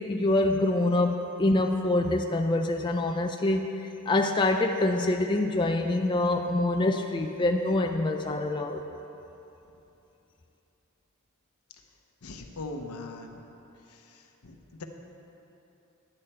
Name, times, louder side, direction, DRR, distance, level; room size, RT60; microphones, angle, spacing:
voice 1, 0.0-8.8, left 2 dB, 20° left, 4 dB, 0.3 m, -25 dB
voice 2, 12.2-13.4 13.9-14.8, left 2 dB, 80° left, 4 dB, 0.9 m, -41 dB
11.0 x 8.6 x 4.3 m, 3.0 s
head